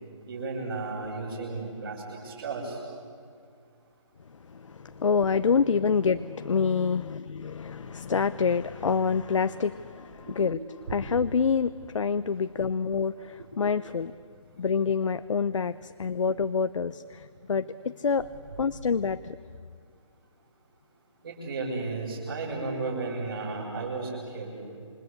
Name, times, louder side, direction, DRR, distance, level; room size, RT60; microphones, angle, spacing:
voice 1, 0.3-2.8 10.3-10.4 10.9-11.0 21.2-24.5, right 3 dB, 40° right, -7 dB, 6.7 m, -34 dB
voice 2, 4.7-14.1 14.6-18.3 18.6-19.4, left 5 dB, 70° left, 12 dB, 0.7 m, -27 dB
28.5 x 25.5 x 8.3 m, 2.3 s
hypercardioid pair, 170°, 16 cm